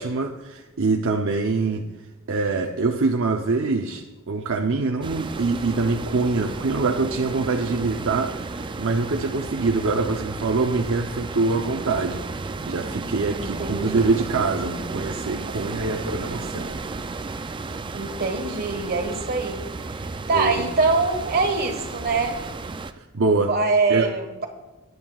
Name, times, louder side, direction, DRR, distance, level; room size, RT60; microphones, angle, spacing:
voice 1, 0.0-1.8 2.3-12.2 12.7-16.8 20.3-20.6 22.9-23.5 23.9-24.1, right 3 dB, 65° right, 2 dB, 0.7 m, -24 dB
sound 1, 5.0-22.9, right 3 dB, 20° right, 0.4 m, -33 dB
voice 2, 13.4-14.2 17.9-19.6 20.3-22.4 23.5-24.5, right 3 dB, 45° right, 5 dB, 1.4 m, -24 dB
19.5 x 9.4 x 2.4 m, 1.1 s
head